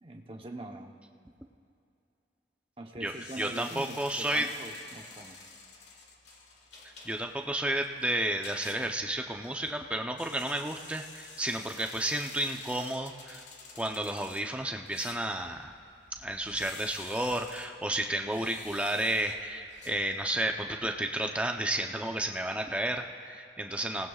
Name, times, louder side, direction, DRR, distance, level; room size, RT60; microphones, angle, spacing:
voice 1, 0.0-0.9 1.2-1.3 2.8-5.4, right 1 dB, 30° right, 3 dB, 1.0 m, -43 dB
sound 1, 3.0-20.5, left 4 dB, 80° left, 1.8 m, -50 dB
voice 2, 3.0-4.5 7.0-13.4 13.8-15.7 16.2-24.1, right 1 dB, 5° right, 3 dB, 0.7 m, -32 dB
28.0 x 18.5 x 2.4 m, 2.6 s
head